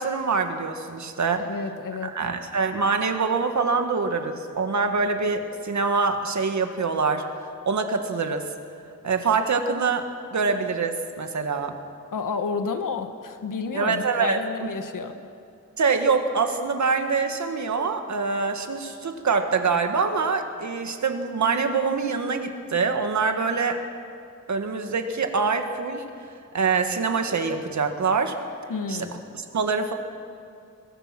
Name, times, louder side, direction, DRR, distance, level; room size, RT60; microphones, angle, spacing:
voice 1, 0.0-1.5 2.0-7.2 7.7-8.4 9.0-11.8 13.7-14.4 15.8-23.8 24.5-26.0 26.5-28.4 28.9-29.1 29.5-29.9, right 4 dB, 65° right, 6 dB, 1.8 m, -25 dB
voice 2, 1.4-2.2 12.1-15.2 28.7-29.2, left 4 dB, 85° left, 7 dB, 1.4 m, -30 dB
23.0 x 21.0 x 6.0 m, 2.5 s
wide cardioid pair, 160°, 31 cm